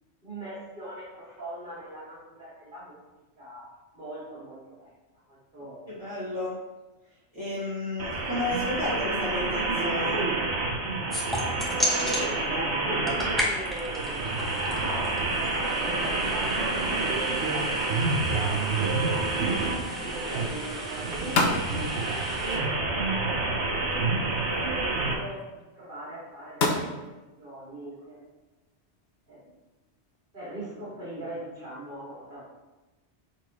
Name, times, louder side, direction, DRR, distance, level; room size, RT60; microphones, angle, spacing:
voice 1, 0.2-3.0 3.4-3.6 3.9-4.9 5.3-5.9 11.7-16.6 17.1-19.5 20.0-21.9 22.4-28.2 29.3-29.4 30.3-32.4, right 1 dB, 50° right, -10 dB, 2.7 m, -41 dB
voice 2, 5.9-6.5 7.3-10.2 20.0-20.1, left 2 dB, 30° right, -12 dB, 2.1 m, -32 dB
sound 1, 8.0-25.1, right 3 dB, 75° right, 1.3 m, -28 dB
sound 2, 11.1-12.2 12.9-22.6, equal, ahead, 1.1 m, -36 dB
sound 3, 17.4-30.2, left 2 dB, 65° left, 1.0 m, -36 dB
8.6 x 4.4 x 3.1 m, 1.1 s
omnidirectional pair, 1.2 m